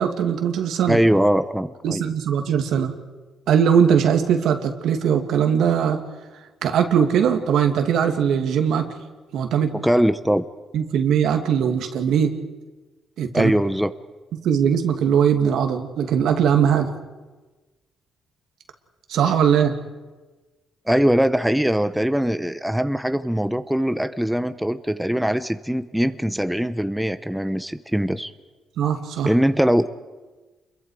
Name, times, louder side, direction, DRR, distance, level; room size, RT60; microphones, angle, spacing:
voice 1, 0.0-1.0 1.8-2.9 3.5-6.0 6.6-8.9 9.3-9.7 10.7-12.3 13.2-13.5 14.4-16.9 19.1-19.8 28.8-29.3, right 8 dB, 75° right, 6 dB, 2.2 m, -20 dB
voice 2, 0.9-2.1 9.8-10.4 13.3-13.9 20.9-28.3 29.2-29.9, equal, 5° right, 10 dB, 0.8 m, -21 dB
28.5 x 22.5 x 4.9 m, 1.2 s
cardioid pair, 90°, 0 cm